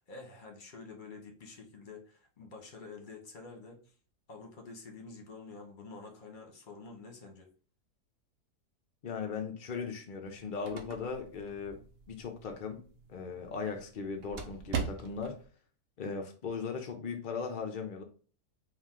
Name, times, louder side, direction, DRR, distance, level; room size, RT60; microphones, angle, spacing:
voice 1, 0.0-3.8 4.3-7.5, left 4 dB, 40° left, 0.8 m, -48 dB
voice 2, 9.0-11.8 12.1-12.8 13.1-15.4 16.0-18.0, left 5 dB, 85° left, 0.4 m, -38 dB
sound 1, 10.2-15.4, right 6 dB, 60° right, 0.6 m, -42 dB
4.6 x 2.4 x 3.6 m
omnidirectional pair, 1.8 m